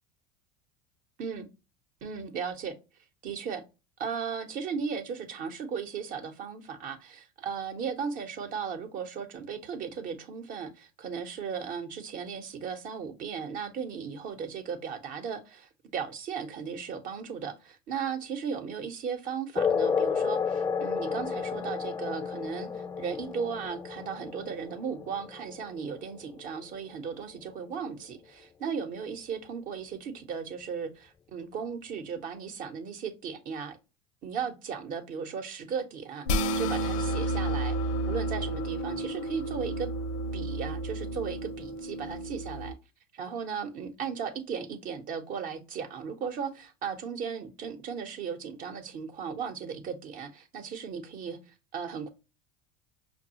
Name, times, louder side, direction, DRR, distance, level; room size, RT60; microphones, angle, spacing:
voice 1, 2.0-2.7 3.2-3.6 4.0-33.8 34.2-37.8 38.1-39.9 40.3-42.7 43.1-51.4 51.7-52.1, right 6 dB, 50° right, 0.9 m, -36 dB
sound 1, 19.6-26.6, left 6 dB, 15° left, 0.4 m, -31 dB
sound 2, 36.3-42.7, right 1 dB, 75° left, 0.6 m, -31 dB
5.4 x 2.3 x 2.8 m
hypercardioid pair, 90°, 18 cm